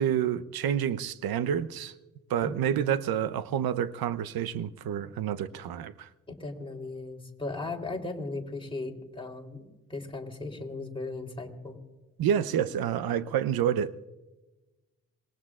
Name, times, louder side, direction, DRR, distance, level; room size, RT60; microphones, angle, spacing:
voice 1, 0.0-1.9 2.3-6.1 12.2-14.1, right 9 dB, 65° right, 15 dB, 0.9 m, -28 dB
voice 2, 2.4-3.0 6.3-11.8, left 3 dB, 15° left, 2 dB, 3.6 m, -37 dB
26.0 x 21.0 x 2.5 m, 1.1 s
hypercardioid pair, 45°, 40 cm